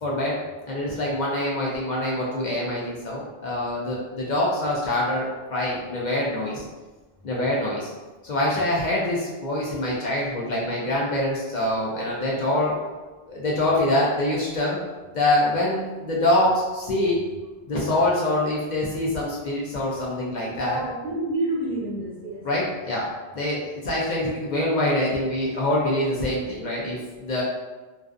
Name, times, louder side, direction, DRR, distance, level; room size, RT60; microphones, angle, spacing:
voice 1, 0.0-0.4 0.7-6.6 7.2-7.9 8.2-12.7 13.3-14.8 15.1-17.2 17.7-20.8 22.4-23.0 23.3-27.4, left 1 dB, 55° left, -5 dB, 0.5 m, -25 dB
voice 2, 20.5-22.4, right 1 dB, 50° right, -6 dB, 1.0 m, -29 dB
2.4 x 2.3 x 2.4 m, 1.2 s
omnidirectional pair, 1.2 m